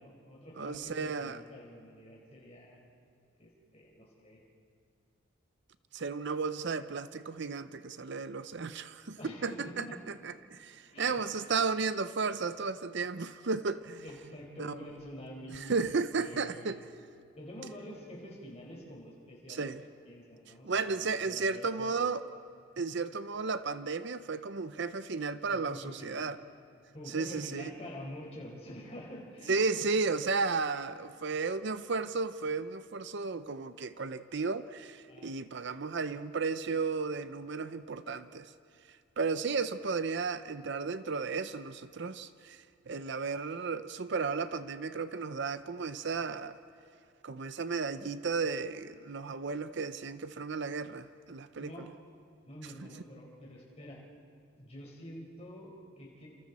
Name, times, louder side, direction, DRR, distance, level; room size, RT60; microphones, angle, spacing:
voice 1, 0.0-2.8 3.4-4.4 9.2-10.0 10.9-11.2 14.0-16.7 17.4-22.0 25.5-26.2 26.9-29.9 35.1-35.3 51.6-51.9 52.5-54.0 54.6-56.3, equal, 30° left, -2 dB, 4.6 m, -47 dB
voice 2, 0.6-1.4 5.9-14.0 14.6-14.8 15.5-16.8 19.5-19.8 20.6-22.2 22.8-26.4 27.1-27.7 29.5-38.5 39.2-46.6 47.2-51.9, right 4 dB, 55° right, 12 dB, 0.6 m, -34 dB
30.0 x 27.5 x 4.2 m, 2.5 s
head